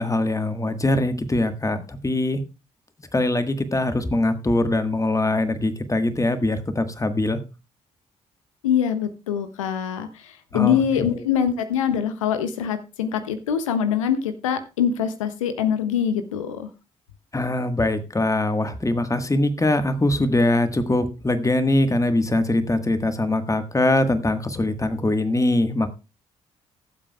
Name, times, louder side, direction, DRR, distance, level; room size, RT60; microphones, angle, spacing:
voice 1, 0.0-2.4 3.1-7.4 10.5-11.2 17.3-25.9, left 2 dB, 20° left, 9 dB, 1.4 m, -22 dB
voice 2, 8.6-16.7, left 8 dB, 90° left, 10 dB, 0.5 m, -24 dB
19.5 x 7.6 x 2.3 m, 0.29 s
hypercardioid pair, 40°, 16 cm